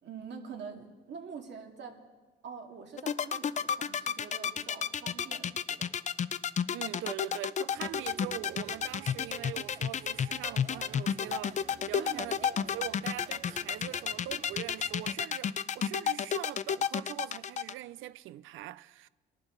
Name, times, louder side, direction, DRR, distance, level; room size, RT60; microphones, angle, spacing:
voice 1, 0.0-2.0 2.4-5.9 11.9-12.2, right 6 dB, 60° right, 2.3 m, -45 dB
sound 1, 3.0-17.7, left 8 dB, 35° left, 0.5 m, -31 dB
voice 2, 6.7-19.1, right 15 dB, 85° right, 0.5 m, -42 dB
sound 2, 7.7-15.2, right 6 dB, 35° right, 0.6 m, -51 dB
23.5 x 11.5 x 3.9 m
cardioid pair, 90°, 20 cm